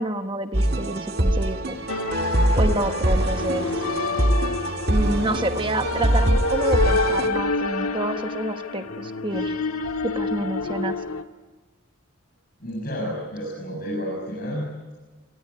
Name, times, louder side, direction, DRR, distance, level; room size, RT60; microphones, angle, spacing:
voice 1, 0.0-1.8 2.6-3.8 4.9-9.6 10.0-10.9, right 1 dB, 25° right, 8 dB, 1.2 m, -28 dB
sound 1, 0.5-7.3, right 1 dB, 45° right, 1.8 m, -23 dB
sound 2, 1.9-11.2, left 3 dB, 90° left, 1.6 m, -27 dB
voice 2, 12.6-14.9, equal, 40° left, -5 dB, 7.8 m, -31 dB
28.0 x 18.5 x 9.9 m, 1.3 s
head